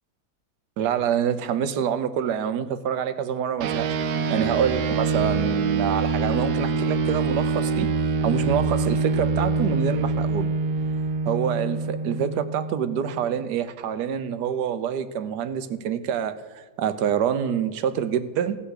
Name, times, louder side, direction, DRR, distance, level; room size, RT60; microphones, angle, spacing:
voice 1, 0.8-3.9 4.3-7.9 8.2-10.5 11.3-18.6, right 8 dB, 90° right, 1.3 m, -26 dB
sound 1, 3.6-13.3, right 4 dB, 75° right, 1.2 m, -25 dB
16.5 x 5.7 x 6.4 m
omnidirectional pair, 1.7 m